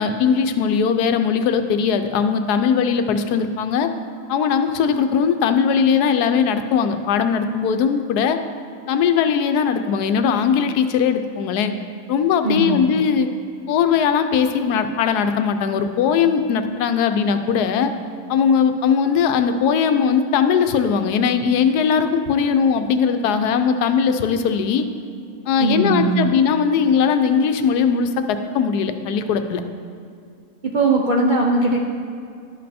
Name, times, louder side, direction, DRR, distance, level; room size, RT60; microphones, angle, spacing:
voice 1, 0.0-3.9 4.3-8.4 8.9-11.7 12.1-13.3 13.7-17.9 18.3-24.9 25.5-29.6, left 6 dB, 85° left, 8 dB, 1.1 m, -19 dB
voice 2, 12.4-12.8 25.6-26.3 30.7-31.8, right 3 dB, 55° right, -2 dB, 0.5 m, -19 dB
11.5 x 5.3 x 4.2 m, 2.4 s
omnidirectional pair, 1.7 m